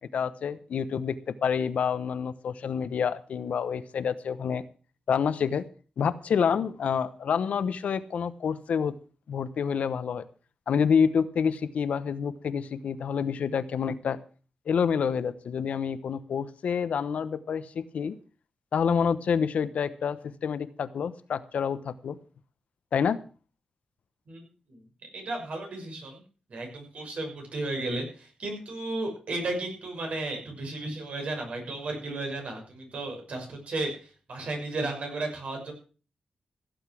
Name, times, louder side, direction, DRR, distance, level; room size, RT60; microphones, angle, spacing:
voice 1, 0.1-4.6 5.1-5.6 6.0-9.0 9.3-10.2 10.7-14.2 14.7-18.1 18.7-22.2 22.9-23.2, left 7 dB, 85° left, 13 dB, 1.0 m, -28 dB
voice 2, 24.3-26.2 26.5-35.7, right 2 dB, 70° right, 2 dB, 6.3 m, -34 dB
16.0 x 8.2 x 6.2 m, 0.37 s
wide cardioid pair, 95°, 2 cm